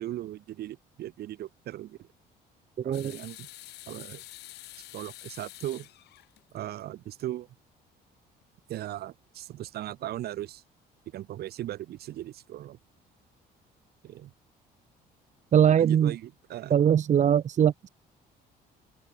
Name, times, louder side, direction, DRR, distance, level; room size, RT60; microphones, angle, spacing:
voice 1, 0.0-2.1 2.8-3.5 3.9-4.2 4.9-5.9 6.5-7.5 8.7-10.6 11.1-12.8 14.0-14.3 15.8-16.8, right 13 dB, 70° right, 4.4 m, -38 dB
sound 1, 2.9-6.8 7.2-7.3 8.4-8.5, left 16 dB, 80° left, 4.2 m, -47 dB
voice 2, 15.5-16.1 16.7-17.9, right 9 dB, 45° right, 1.3 m, -21 dB
open air
cardioid pair, 110°, 17 cm